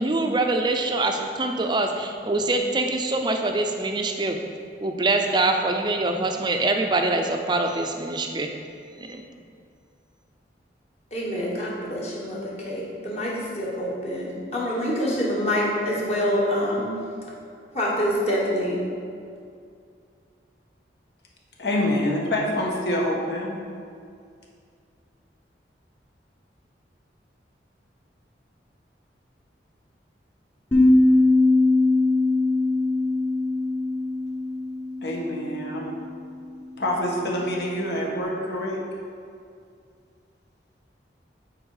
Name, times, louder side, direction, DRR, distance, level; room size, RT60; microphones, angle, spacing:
voice 1, 0.0-4.4 4.8-8.5 9.0-9.2, right 2 dB, 25° right, 4 dB, 0.5 m, -24 dB
voice 2, 11.1-16.9 17.7-18.8, equal, 35° left, -5 dB, 1.4 m, -26 dB
voice 3, 21.6-23.6 35.0-36.0 36.8-38.8, left 1 dB, 65° left, -2 dB, 1.3 m, -26 dB
sound 1, 30.7-35.8, left 2 dB, 10° left, 0.9 m, -21 dB
8.8 x 4.4 x 4.8 m, 2.3 s
head